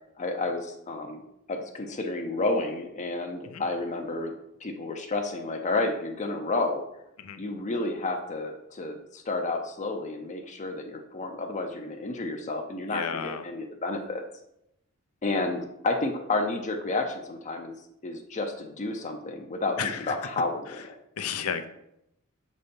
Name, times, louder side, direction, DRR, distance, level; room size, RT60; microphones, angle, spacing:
voice 1, 0.2-1.2 1.5-4.3 4.6-6.8 7.4-14.2 15.2-17.8 18.0-21.0, left 2 dB, 35° left, 4 dB, 0.6 m, -31 dB
voice 2, 12.9-13.4 19.8-20.0 21.2-21.7, left 7 dB, 80° left, 9 dB, 0.6 m, -31 dB
6.6 x 4.2 x 5.2 m, 0.82 s
head